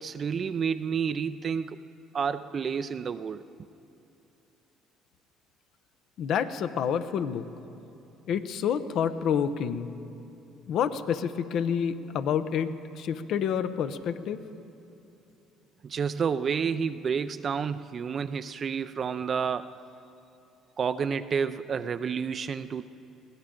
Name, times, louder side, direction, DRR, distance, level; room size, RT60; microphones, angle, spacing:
voice 1, 0.0-1.8 2.1-3.4 15.8-19.7 20.8-22.8, right 6 dB, 45° right, 10 dB, 0.4 m, -30 dB
voice 2, 6.2-7.4 8.3-9.9 10.7-14.4, left 8 dB, 65° left, 11 dB, 0.8 m, -28 dB
21.5 x 16.0 x 3.8 m, 2.9 s
supercardioid pair, 70°, 0 cm